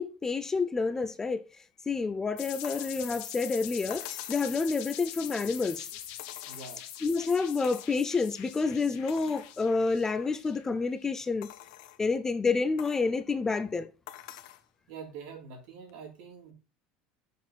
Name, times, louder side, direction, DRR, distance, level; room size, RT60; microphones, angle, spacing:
voice 1, 0.0-1.4 1.9-5.9 7.0-11.5 12.0-13.9, left 4 dB, 15° left, 0.5 m, -29 dB
sound 1, 2.4-10.9, left 11 dB, 65° left, 1.5 m, -43 dB
sound 2, 2.6-3.0 3.9-4.7 6.2-7.0 7.6-8.0 8.5-8.6 9.1-9.6 10.2-10.3 11.4-12.0 12.8-13.1 14.1-14.7 15.9-16.0, left 13 dB, 90° left, 0.9 m, -46 dB
voice 2, 6.5-6.8 14.9-16.5, right 5 dB, 70° right, 3.3 m, -45 dB
6.4 x 5.5 x 4.1 m
cardioid pair, 155°, 3 cm